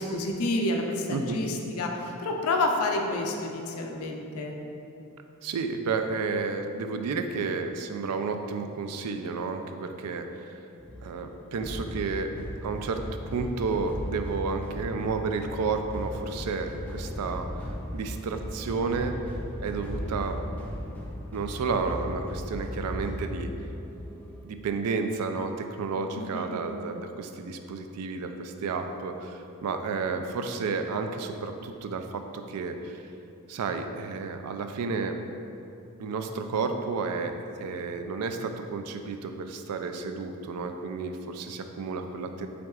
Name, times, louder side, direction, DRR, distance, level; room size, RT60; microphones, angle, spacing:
voice 1, 0.0-4.6 26.2-26.5, left 2 dB, 75° left, 2 dB, 0.5 m, -29 dB
voice 2, 5.4-10.5 11.0-12.3 12.6-19.2 19.6-20.4 21.3-23.5 24.4-33.0 33.5-35.2 36.0-42.5, right 4 dB, 90° right, 6 dB, 0.3 m, -31 dB
sound 1, 10.8-24.4, equal, 5° left, 0.3 m, -37 dB
6.0 x 3.6 x 2.3 m, 2.7 s
head